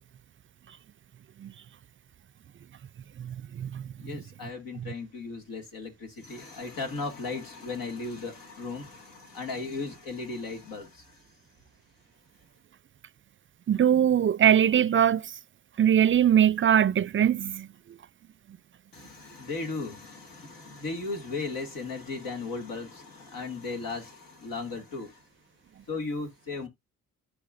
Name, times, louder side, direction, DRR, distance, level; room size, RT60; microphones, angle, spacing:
voice 1, 3.2-3.8 13.7-15.2 15.8-17.7, right 9 dB, 40° right, 0.4 m, -22 dB
voice 2, 4.0-11.3 18.9-25.2 25.9-26.7, left 3 dB, 85° left, 2.2 m, -36 dB
13.5 x 4.7 x 2.5 m
cardioid pair, 60°, 33 cm